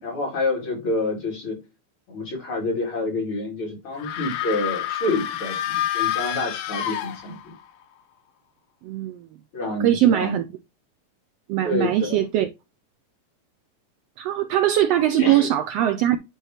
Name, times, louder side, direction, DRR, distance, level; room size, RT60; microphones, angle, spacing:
voice 1, 0.0-1.6 2.1-7.5 9.5-10.4 11.6-12.2 15.1-15.5, left 2 dB, 45° left, 3.4 m, -28 dB
sound 1, 4.0-7.6, left 12 dB, 70° left, 1.7 m, -28 dB
voice 2, 8.8-9.3 9.8-10.4 11.5-12.5 14.2-16.2, right 12 dB, 85° right, 1.4 m, -21 dB
10.0 x 3.6 x 2.8 m
omnidirectional pair, 3.4 m